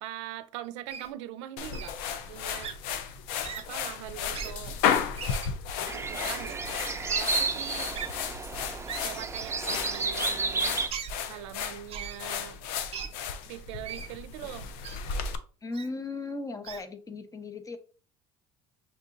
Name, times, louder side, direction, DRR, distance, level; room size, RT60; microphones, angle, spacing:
voice 1, 0.0-2.7 3.6-4.8 5.9-6.7 7.1-7.9 9.0-10.8 11.3-12.6 13.5-14.7, right 13 dB, 90° right, 0.4 m, -42 dB
Wild animals, 0.9-1.1 1.7-1.9 2.6-2.7 3.4-3.6 4.3-4.5 5.2-5.5 6.2-6.3 7.1-7.2 7.9-8.1 8.9-9.1 9.9-10.1 10.9-11.1 11.9-12.2 12.9-13.1 13.8-14.1 14.8-15.0 15.7-15.9 16.6-16.8, right 7 dB, 40° right, 0.8 m, -37 dB
sound 1, 1.6-15.4, left 7 dB, 75° left, 0.5 m, -34 dB
sound 2, 5.9-10.9, right 4 dB, 15° right, 0.5 m, -32 dB
voice 2, 15.6-17.8, left 3 dB, 20° left, 0.7 m, -37 dB
5.8 x 2.7 x 2.5 m
supercardioid pair, 85°, 15 cm